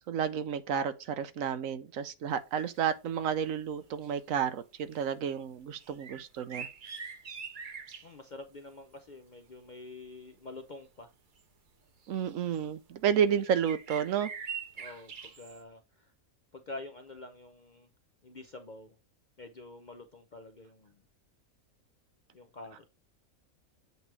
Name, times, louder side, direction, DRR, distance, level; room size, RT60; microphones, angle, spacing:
voice 1, 0.1-6.7 12.1-14.3, right 8 dB, 70° right, 1.0 m, -31 dB
sound 1, 2.8-2.9 3.2-3.4 3.8-4.5 4.9-5.1 5.8-8.2 10.3-10.4 11.4-11.5 12.0-12.6 13.4-15.6, right 6 dB, 45° right, 0.8 m, -43 dB
voice 2, 8.0-11.1 14.8-16.1 16.5-17.9 18.2-19.0 19.4-21.0 22.3-22.8, left 2 dB, 50° left, 0.6 m, -47 dB
8.1 x 3.1 x 4.6 m
omnidirectional pair, 1.5 m